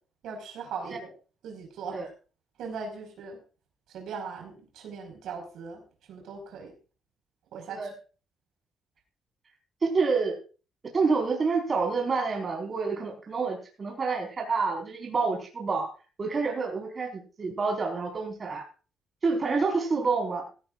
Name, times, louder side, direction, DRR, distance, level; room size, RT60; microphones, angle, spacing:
voice 1, 0.2-1.1 1.4-2.0 2.6-3.4 3.9-5.8 6.1-6.7 7.5-7.9, right 5 dB, 75° right, 2 dB, 5.4 m, -39 dB
voice 2, 9.8-10.4 10.9-15.9 16.2-18.6 19.2-20.4, right 4 dB, 35° right, 1 dB, 5.1 m, -28 dB
16.0 x 16.0 x 2.6 m, 0.36 s
cardioid pair, 115°, 0 cm